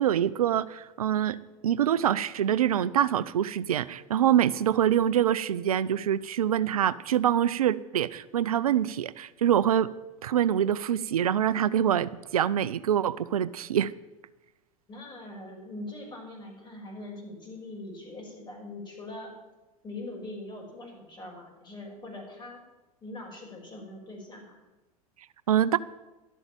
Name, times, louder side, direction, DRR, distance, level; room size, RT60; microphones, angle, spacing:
voice 1, 0.0-1.4 1.6-9.9 10.2-13.9 25.5-25.8, right 10 dB, 85° right, 17 dB, 0.5 m, -25 dB
voice 2, 14.9-19.3 19.8-22.6 23.0-24.6, left 2 dB, 25° left, 0 dB, 5.7 m, -42 dB
12.0 x 7.9 x 8.9 m, 1.1 s
hypercardioid pair, 85°, 18 cm